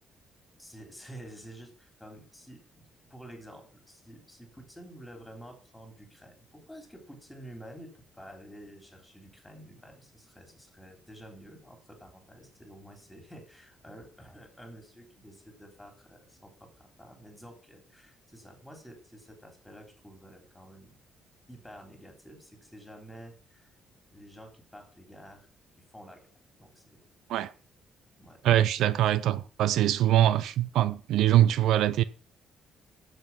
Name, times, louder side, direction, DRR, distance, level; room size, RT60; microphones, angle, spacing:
voice 1, 0.6-20.9 21.5-23.7 24.1-25.5 25.9-26.3 26.6-27.1 28.2-28.4, equal, 5° left, 3.5 m, -50 dB
voice 2, 28.4-32.0, right 12 dB, 85° right, 0.5 m, -23 dB
8.1 x 7.3 x 5.8 m
cardioid pair, 120°, 0 cm